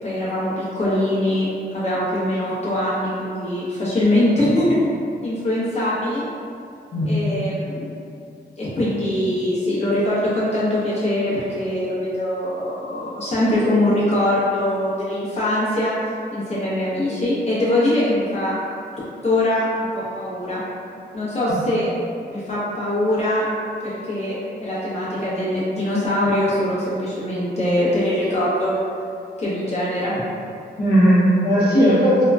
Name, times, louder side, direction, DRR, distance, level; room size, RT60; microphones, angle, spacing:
voice 1, 0.0-4.7 5.2-6.2 7.1-7.9 8.6-15.9 16.3-18.6 19.2-20.6 21.1-21.9 22.3-23.5 23.8-28.7 29.4-30.2, left 1 dB, 40° left, -9 dB, 1.0 m, -22 dB
voice 2, 6.9-7.4 21.5-21.6 30.8-32.2, equal, 65° left, -12 dB, 0.8 m, -17 dB
2.9 x 2.1 x 2.3 m, 2.4 s
wide cardioid pair, 115°, 18 cm